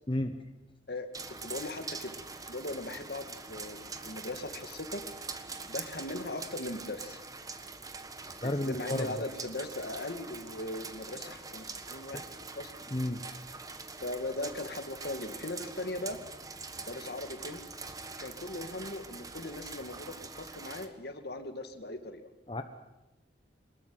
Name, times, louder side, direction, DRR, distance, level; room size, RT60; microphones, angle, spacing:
sound 1, 1.1-20.9, right 4 dB, 20° right, 1.5 m, -44 dB
voice 1, 1.4-2.2 2.5-5.0 5.7-7.2 8.4-12.2 12.6-12.7 14.0-16.2 16.8-17.6 18.2-22.3, left 2 dB, 60° left, 8 dB, 2.2 m, -39 dB
voice 2, 8.4-9.1 12.9-13.2 22.5-22.6, left 1 dB, 30° left, 6 dB, 1.1 m, -31 dB
23.5 x 21.0 x 7.9 m, 0.97 s
head